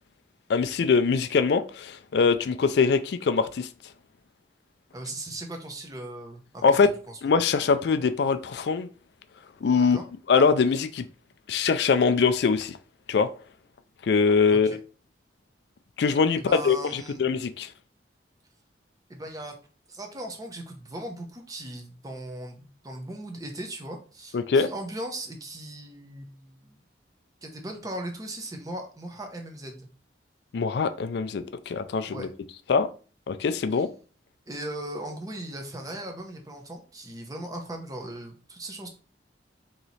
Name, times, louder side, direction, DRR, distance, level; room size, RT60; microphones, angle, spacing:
voice 1, 0.5-3.7 6.6-6.9 7.2-8.9 9.6-10.0 10.3-11.1 11.5-12.8 13.1-13.3 14.0-14.8 16.0-17.7 24.3-24.7 30.5-32.3 32.7-32.9 33.3-33.9, left 5 dB, 65° left, 0.3 m, -23 dB
voice 2, 4.9-7.2 9.8-10.0 14.5-14.8 16.4-17.2 19.1-19.6 19.9-26.8 27.4-29.9 32.0-32.3 33.7-33.8 34.5-38.9, right 1 dB, 20° right, 0.7 m, -38 dB
3.1 x 2.9 x 4.0 m
head